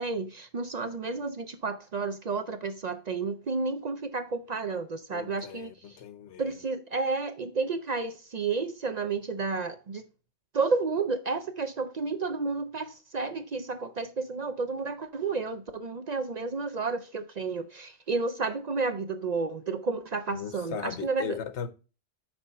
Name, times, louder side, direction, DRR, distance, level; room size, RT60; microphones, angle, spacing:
voice 1, 0.0-6.0 6.4-10.0 10.5-21.4, right 4 dB, 50° right, 0.5 m, -31 dB
voice 2, 5.1-6.5 20.3-21.7, left 8 dB, 90° left, 1.1 m, -38 dB
6.1 x 5.0 x 4.1 m
omnidirectional pair, 1.1 m